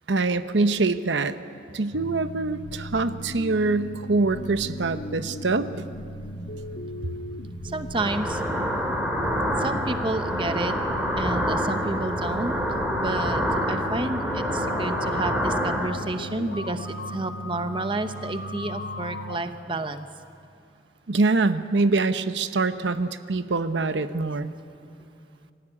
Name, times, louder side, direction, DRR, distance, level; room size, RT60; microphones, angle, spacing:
voice 1, 0.1-1.4 1.7-5.9 21.1-24.5, right 3 dB, 85° right, 11 dB, 0.8 m, -24 dB
sound 1, 1.9-19.4, equal, 80° left, 1.4 m, -37 dB
voice 2, 7.7-8.4 9.6-10.7 11.2-12.8 13.0-13.4 13.7-20.1, right 2 dB, 30° right, 9 dB, 0.8 m, -30 dB
sound 2, 7.9-15.9, equal, 5° right, 2.7 m, -27 dB
25.5 x 15.5 x 9.9 m, 2.5 s
head